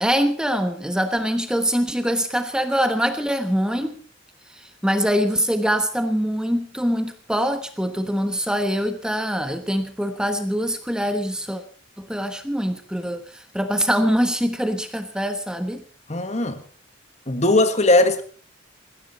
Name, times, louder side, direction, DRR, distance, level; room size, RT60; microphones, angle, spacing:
voice 1, 0.0-4.0 4.5-11.6 12.0-15.8, equal, 5° right, 1.2 m, -24 dB
voice 2, 16.1-16.6 17.3-18.2, left 2 dB, 35° left, 1.7 m, -18 dB
20.5 x 15.5 x 4.3 m
head